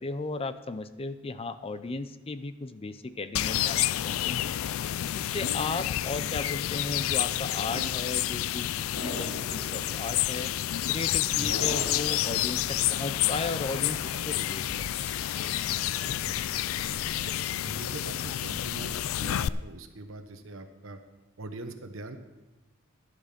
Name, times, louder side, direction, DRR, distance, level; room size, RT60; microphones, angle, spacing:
voice 1, 0.0-4.5 5.1-10.5 10.9-14.7, left 3 dB, 30° left, 12 dB, 0.5 m, -35 dB
sound 1, 3.4-19.5, left 13 dB, 85° left, 0.3 m, -29 dB
voice 2, 5.2-5.6 7.7-7.9 11.3-11.8 16.2-16.8 17.2-17.3 17.6-21.0 21.4-22.2, right 2 dB, 75° right, 7 dB, 1.1 m, -42 dB
sound 2, 8.9-9.9 11.5-12.5, left 1 dB, 60° left, 1.5 m, -38 dB
sound 3, 9.1-18.9, right 2 dB, 60° right, 1.8 m, -50 dB
11.5 x 8.6 x 5.9 m, 1.1 s
head